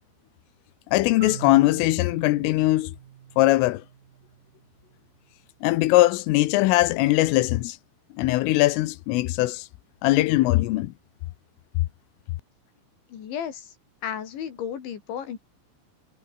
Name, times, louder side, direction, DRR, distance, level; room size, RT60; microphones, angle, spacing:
voice 1, 0.9-2.9 3.4-3.8 5.6-7.8 8.2-9.7 10.0-10.9, left 18 dB, 85° left, 3.6 m, -21 dB
Marimba xylophone, 1.2-5.1, right 10 dB, 55° right, 2.8 m, -45 dB
voice 2, 13.1-13.7 14.0-15.4, left 8 dB, 70° left, 5.4 m, -33 dB
omnidirectional pair, 5.7 m